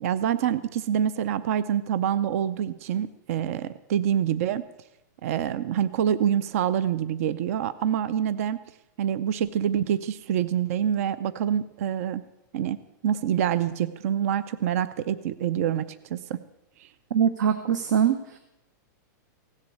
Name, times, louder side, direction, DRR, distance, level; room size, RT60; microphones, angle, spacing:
voice 1, 0.0-4.6 5.2-8.6 9.0-12.2 12.5-12.8 13.0-16.4, right 9 dB, 50° right, 16 dB, 0.6 m, -26 dB
voice 2, 17.1-18.4, right 8 dB, 70° right, 9 dB, 1.1 m, -23 dB
16.5 x 7.5 x 8.8 m, 0.91 s
supercardioid pair, 170°, 10 cm